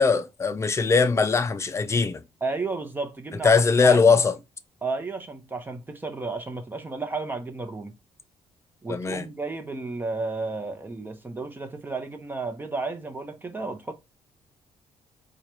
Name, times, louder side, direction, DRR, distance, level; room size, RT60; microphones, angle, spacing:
voice 1, 0.0-2.2 3.4-4.3 8.9-9.3, left 4 dB, 25° left, 0.5 m, -20 dB
voice 2, 2.4-3.5 3.8-4.1 4.8-7.9 8.8-13.9, right 3 dB, 15° right, 0.9 m, -32 dB
4.7 x 2.4 x 4.3 m
cardioid pair, 130°, 12 cm